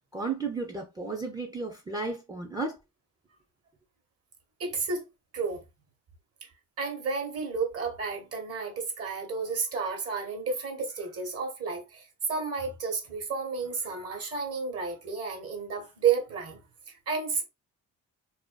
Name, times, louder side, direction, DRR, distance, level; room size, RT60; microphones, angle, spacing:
voice 1, 0.1-2.8, right 3 dB, 15° right, 0.4 m, -33 dB
voice 2, 4.6-5.0 5.3-5.6 6.4-6.5 6.8-16.6 16.9-17.4, right 5 dB, 50° right, 1.0 m, -31 dB
2.5 x 2.2 x 2.2 m
cardioid pair, 90°, 30 cm